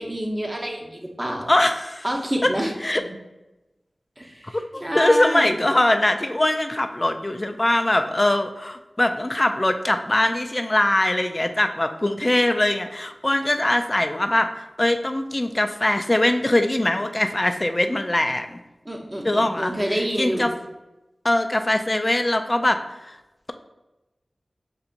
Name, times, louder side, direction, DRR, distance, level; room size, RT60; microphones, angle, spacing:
voice 1, 0.0-1.5 2.0-2.7 3.0-3.1 4.2-5.6 18.8-20.5, equal, 25° right, 0 dB, 1.0 m, -28 dB
voice 2, 1.5-2.0 2.4-2.5 2.8-3.0 4.5-18.6 19.2-20.5 21.2-23.2, left 1 dB, 30° left, 7 dB, 0.4 m, -22 dB
6.8 x 2.7 x 2.5 m, 1.0 s
cardioid pair, 40°, 0 cm